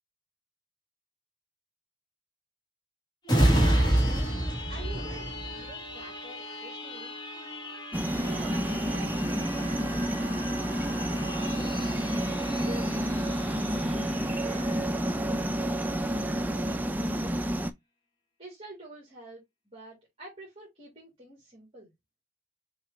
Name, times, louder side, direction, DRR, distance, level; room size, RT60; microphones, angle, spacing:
sound 1, 3.2-16.6 17.0-17.2, equal, 20° left, 1.2 m, -31 dB
voice 1, 3.6-7.2 8.2-10.2 10.9-12.1 12.5-13.1 14.4-15.3 16.5-17.5 18.4-21.9, right 2 dB, 30° right, 1.9 m, -48 dB
sound 2, 7.9-17.7, right 1 dB, 10° right, 0.3 m, -29 dB
6.1 x 2.4 x 3.1 m
head